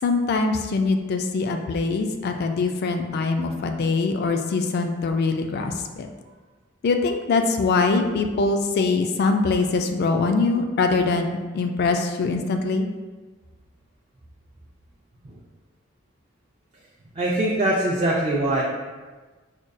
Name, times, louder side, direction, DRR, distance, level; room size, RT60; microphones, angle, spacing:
voice 1, 0.0-6.1 6.8-12.9, left 3 dB, 50° left, 5 dB, 0.3 m, -23 dB
voice 2, 17.2-18.6, right 1 dB, 30° right, -4 dB, 0.4 m, -22 dB
5.0 x 2.2 x 2.5 m, 1.3 s
head